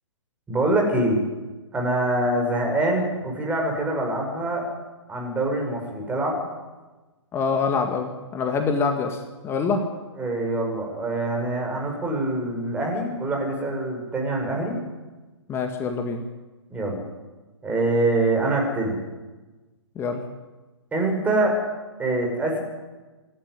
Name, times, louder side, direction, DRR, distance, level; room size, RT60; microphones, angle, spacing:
voice 1, 0.5-1.2 1.7-4.6 5.1-6.4 10.2-14.7 16.7-17.0 17.6-19.0 20.9-21.5 22.0-22.6, right 2 dB, 10° right, 0 dB, 6.1 m, -24 dB
voice 2, 7.3-9.8 15.5-16.2 20.0-20.2, left 5 dB, 15° left, 5 dB, 1.9 m, -25 dB
26.5 x 12.5 x 9.6 m, 1.2 s
figure-of-eight pair, 130°, 15 cm